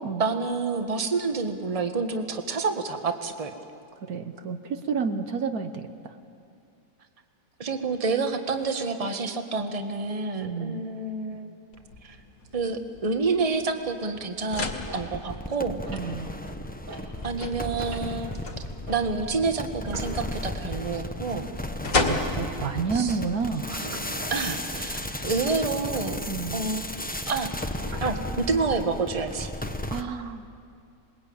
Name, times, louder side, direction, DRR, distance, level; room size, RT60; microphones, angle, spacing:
voice 1, 0.2-3.5 7.6-11.5 12.0-12.2 12.5-14.7 14.9-15.8 17.2-18.3 18.9-21.5 22.9-23.2 24.3-25.0 25.2-26.2 26.5-26.8 27.3-27.5 28.0-29.5, right 4 dB, 25° right, 6 dB, 1.3 m, -28 dB
voice 2, 4.0-6.1 10.3-10.8 15.9-16.3 22.0-23.9 26.3-26.6 29.9-30.5, right 5 dB, 65° right, 7 dB, 1.5 m, -30 dB
sound 1, 11.7-24.7, left 3 dB, 60° left, 2.6 m, -36 dB
sound 2, 14.5-30.0, left 1 dB, 10° left, 0.7 m, -35 dB
Tabletop clock ticking at various speds slowed down, 14.9-17.4 17.7-21.2 21.5-21.6 21.8-22.7 23.8-24.2 25.7-28.6 29.2-29.8, right 1 dB, 85° right, 4.8 m, -44 dB
27.5 x 21.5 x 8.7 m, 2.6 s
omnidirectional pair, 1.8 m